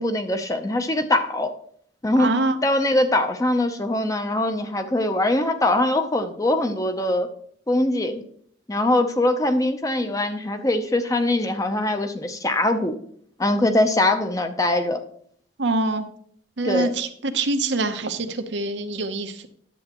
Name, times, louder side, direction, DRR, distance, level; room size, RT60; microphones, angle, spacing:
voice 1, 0.0-1.5 2.0-2.3 2.6-7.3 7.7-8.2 8.7-13.0 13.4-15.0 16.6-16.9, left 1 dB, 20° left, 7 dB, 0.6 m, -22 dB
voice 2, 2.2-2.6 15.6-16.1 16.6-19.5, right 2 dB, 75° right, 8 dB, 0.8 m, -25 dB
10.5 x 7.7 x 2.9 m, 0.62 s
head